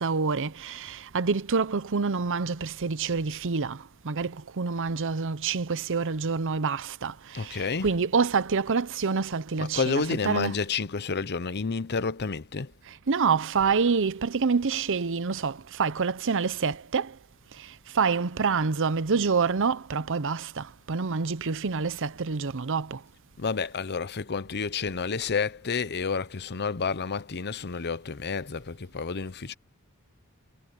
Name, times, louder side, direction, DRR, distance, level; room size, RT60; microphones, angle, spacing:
voice 1, 0.0-10.5 12.9-17.2 17.5-23.0, right 5 dB, 60° right, 0.7 m, -27 dB
voice 2, 7.3-8.0 9.6-12.7 23.4-29.5, left 5 dB, 50° left, 0.8 m, -30 dB
head